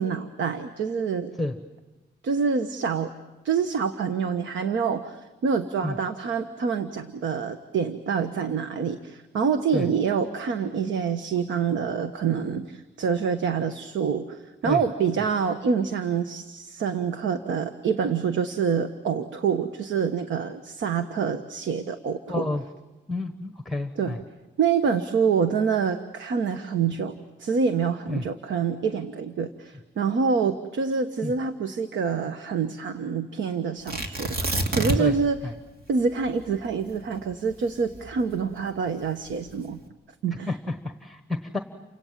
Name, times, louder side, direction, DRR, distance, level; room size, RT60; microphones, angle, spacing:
voice 1, 0.0-1.3 2.2-3.1 3.4-22.5 24.0-24.2 24.6-35.4 35.9-39.8 40.2-40.5, right 6 dB, 90° right, 9 dB, 1.3 m, -26 dB
voice 2, 22.3-22.6 23.1-24.2 28.1-28.3 31.2-31.3 35.0-35.1 35.4-35.5 40.5-41.6, left 2 dB, ahead, 7 dB, 1.1 m, -29 dB
Tearing, 33.9-35.3 35.6-35.7 36.2-38.6 39.3-39.7, right 2 dB, 55° right, 3.0 m, -28 dB
30.0 x 26.0 x 7.5 m, 1.1 s
wide cardioid pair, 160°, 19 cm